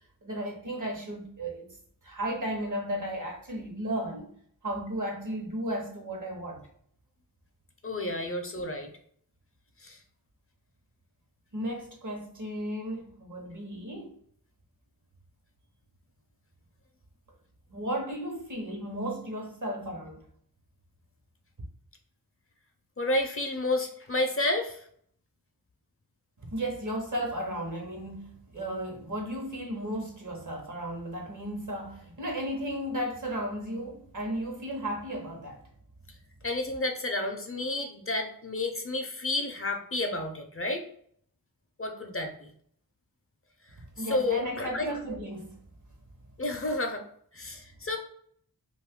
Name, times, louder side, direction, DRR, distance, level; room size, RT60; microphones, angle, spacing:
voice 1, 0.2-1.8 2.0-4.3 4.6-6.6 11.5-14.2 17.7-20.2 26.4-35.6 44.0-45.6, right 1 dB, 55° right, 0.9 m, -34 dB
voice 2, 7.8-8.9 9.8-10.0 23.0-24.9 36.4-40.9 41.8-42.5 44.1-44.9 46.4-47.0 47.3-48.0, left 2 dB, 40° left, 0.5 m, -30 dB
2.6 x 2.4 x 3.5 m
wide cardioid pair, 70°, 35 cm